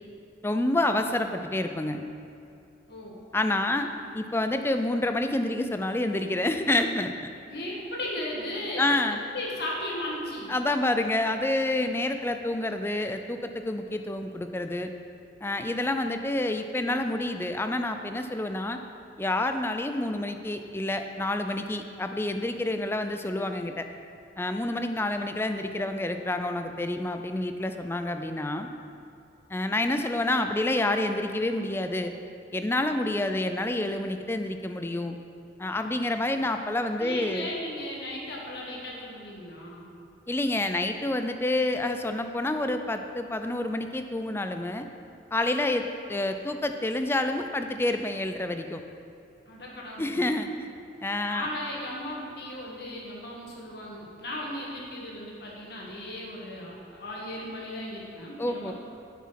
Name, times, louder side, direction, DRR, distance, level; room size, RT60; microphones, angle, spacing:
voice 1, 0.4-2.1 3.3-3.9 4.1-7.1 8.8-9.2 10.3-14.9 15.4-18.8 19.2-23.9 24.4-28.7 29.5-32.1 32.5-35.2 35.6-37.5 40.3-44.9 45.3-48.8 50.0-50.7 51.0-51.5 58.4-58.7, left 1 dB, 15° left, 7 dB, 0.4 m, -28 dB
voice 2, 2.9-3.2 7.5-8.9 9.3-10.6 37.0-39.9 49.5-50.3 51.2-58.7, left 1 dB, 60° left, -3 dB, 1.7 m, -36 dB
7.3 x 6.0 x 5.8 m, 2.6 s
head